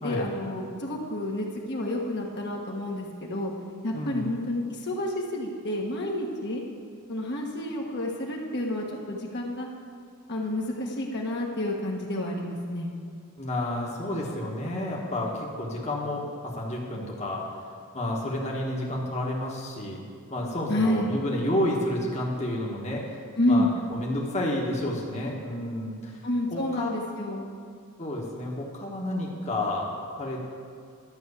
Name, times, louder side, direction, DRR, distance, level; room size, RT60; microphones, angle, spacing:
voice 1, 0.0-3.5 3.8-6.6 7.1-9.7 10.3-12.9 20.7-21.1 23.4-23.7 26.2-27.5, left 1 dB, 50° left, -1 dB, 1.4 m, -29 dB
voice 2, 3.9-4.2 13.4-17.4 17.9-20.0 20.3-23.2 23.5-23.6 23.9-26.2 26.5-26.9 28.0-30.4, left 1 dB, 30° left, -2 dB, 1.4 m, -30 dB
12.0 x 6.3 x 8.2 m, 2.3 s
head